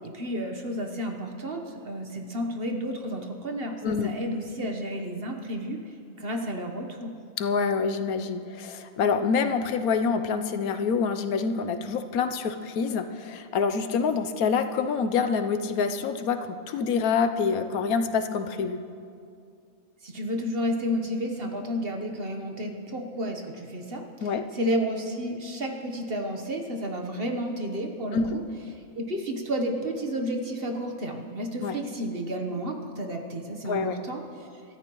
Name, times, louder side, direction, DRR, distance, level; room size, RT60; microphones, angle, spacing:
voice 1, 0.0-5.8 6.2-7.1 20.0-28.4 28.9-34.5, equal, 45° right, 3 dB, 1.2 m, -31 dB
voice 2, 7.4-18.8 24.2-24.4 28.1-28.3 31.6-31.8 33.7-34.0, left 5 dB, 80° left, 8 dB, 1.2 m, -26 dB
23.0 x 13.5 x 3.0 m, 2.4 s
omnidirectional pair, 1.5 m